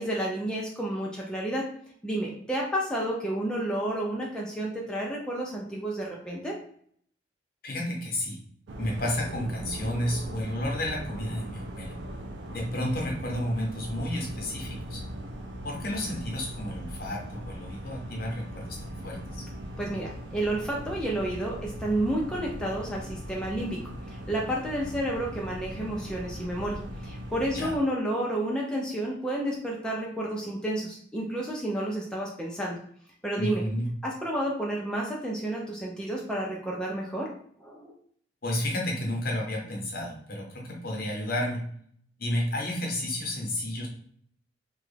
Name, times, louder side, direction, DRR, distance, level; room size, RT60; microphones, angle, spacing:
voice 1, 0.0-1.7 2.0-6.5 19.8-23.8 24.1-32.8 33.2-33.6 34.0-37.3 37.6-37.9, right 1 dB, 5° left, -3 dB, 0.4 m, -31 dB
voice 2, 7.6-8.4 8.8-12.0 12.5-15.0 15.6-19.4 27.5-27.7 33.3-33.9 38.4-41.7 42.2-43.9, left 1 dB, 50° left, 0 dB, 0.9 m, -31 dB
sound 1, 8.7-27.8, equal, 70° right, 0.5 m, -39 dB
2.9 x 2.4 x 3.2 m, 0.62 s
head